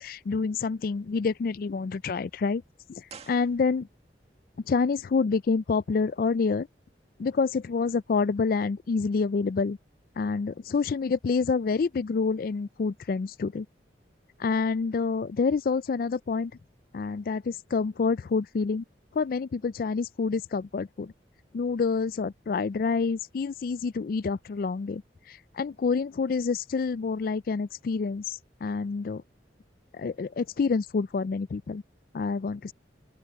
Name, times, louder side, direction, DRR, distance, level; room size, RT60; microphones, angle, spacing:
voice 1, 0.0-2.6 2.9-3.9 4.7-6.7 7.2-9.8 10.2-13.7 14.4-16.5 16.9-18.8 19.1-21.1 21.5-25.0 25.3-29.2 29.9-31.8 32.1-32.7, left 4 dB, 50° left, 0.3 m, -27 dB
sound 1, 3.0-4.2 4.4-4.5, right 5 dB, 35° right, 2.0 m, -49 dB
open air
head